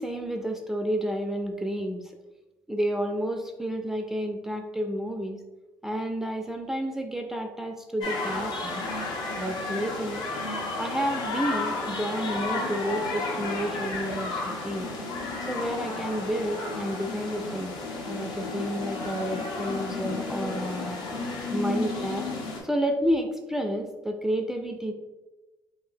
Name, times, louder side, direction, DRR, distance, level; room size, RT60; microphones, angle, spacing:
voice 1, 0.0-2.1 2.7-5.4 5.8-8.8 9.3-10.2 10.8-14.9 15.2-17.7 18.0-21.0 21.5-22.3 22.6-24.9, equal, 5° right, 3 dB, 0.4 m, -30 dB
sound 1, 8.0-22.6, left 3 dB, 70° left, 0.8 m, -32 dB
2.7 x 2.6 x 3.8 m, 1.1 s
supercardioid pair, 80°, 8 cm